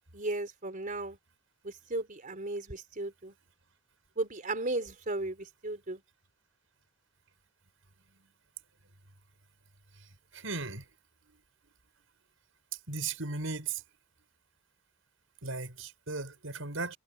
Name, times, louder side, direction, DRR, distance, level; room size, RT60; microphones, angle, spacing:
voice 1, 0.1-1.2 1.6-3.3 4.2-6.0, right 2 dB, 45° right, 4.1 m, -35 dB
voice 2, 10.3-10.8 12.9-13.8 15.4-17.0, right 4 dB, 80° right, 5.9 m, -36 dB
head